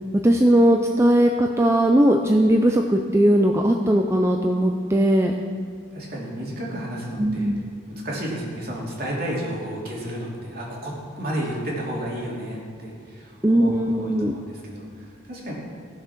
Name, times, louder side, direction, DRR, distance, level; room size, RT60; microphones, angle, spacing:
voice 1, 0.2-5.3 7.2-7.6 13.4-14.3, right 1 dB, 15° right, 2 dB, 0.5 m, -19 dB
voice 2, 5.9-7.5 7.9-15.5, right 1 dB, 50° right, -3 dB, 3.0 m, -32 dB
16.5 x 7.3 x 6.0 m, 2.2 s
head